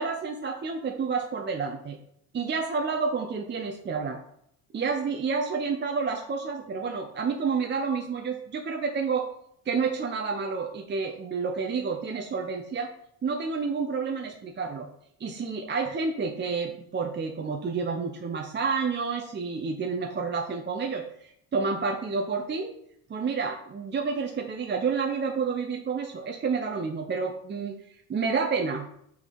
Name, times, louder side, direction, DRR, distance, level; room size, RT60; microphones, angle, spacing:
voice 1, 0.0-2.0 2.3-4.2 4.7-9.3 9.7-12.9 13.2-14.9 15.2-22.8 23.1-28.9, right 5 dB, 25° right, 2 dB, 0.9 m, -29 dB
6.0 x 3.7 x 6.1 m, 0.72 s
hypercardioid pair, 60°, 42 cm